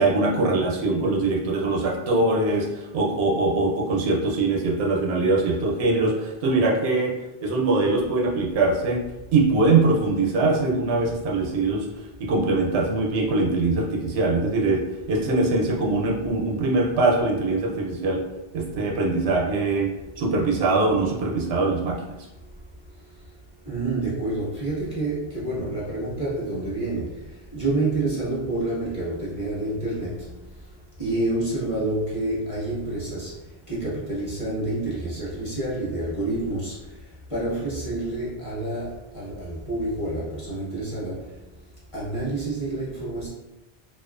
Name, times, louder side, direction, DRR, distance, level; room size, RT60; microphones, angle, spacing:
voice 1, 0.0-7.1 7.4-9.0 9.3-11.9 12.2-14.8 15.1-18.2 18.5-19.9 20.2-22.0, right 3 dB, 80° right, 0 dB, 0.8 m, -22 dB
voice 2, 23.6-30.4 31.0-41.4 41.9-43.3, right 2 dB, 35° left, -7 dB, 0.7 m, -28 dB
2.3 x 2.3 x 2.4 m, 0.98 s
omnidirectional pair, 1.1 m